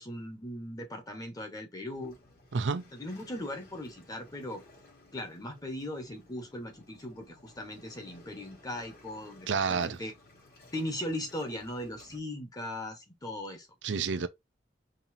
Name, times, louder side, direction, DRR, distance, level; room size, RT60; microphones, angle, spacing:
voice 1, 0.0-2.2 2.9-4.6 5.1-10.1 10.7-13.7, left 1 dB, 20° left, 1.2 m, -39 dB
Waves surf, 1.9-12.2, left 2 dB, 55° left, 3.0 m, -57 dB
voice 2, 2.5-2.8 9.5-10.0 13.8-14.3, right 5 dB, 70° right, 0.5 m, -29 dB
5.4 x 2.8 x 2.7 m
head